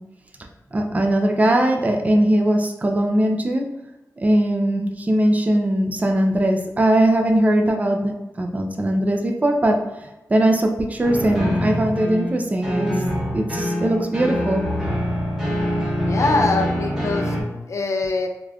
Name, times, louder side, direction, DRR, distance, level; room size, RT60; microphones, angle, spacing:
voice 1, 0.7-3.6 4.2-9.8 10.3-12.9 13.3-14.6, right 1 dB, 25° right, 3 dB, 0.4 m, -20 dB
sound 1, 11.0-17.4, equal, 10° right, 0.9 m, -24 dB
voice 2, 16.0-17.3 17.7-18.3, left 3 dB, 55° left, 4 dB, 0.4 m, -23 dB
3.3 x 2.4 x 2.2 m, 1.0 s
cardioid pair, 65°, 6 cm